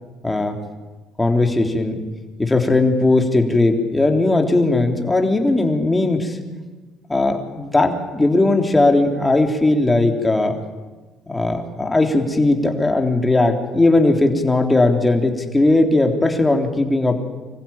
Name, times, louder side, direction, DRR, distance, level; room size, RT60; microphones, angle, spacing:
voice 1, 0.2-0.6 1.2-2.0 2.4-6.4 7.1-10.6 11.3-17.3, left 2 dB, 15° left, 3 dB, 3.5 m, -18 dB
25.5 x 15.5 x 9.1 m, 1.3 s
supercardioid pair, 80°, 0 cm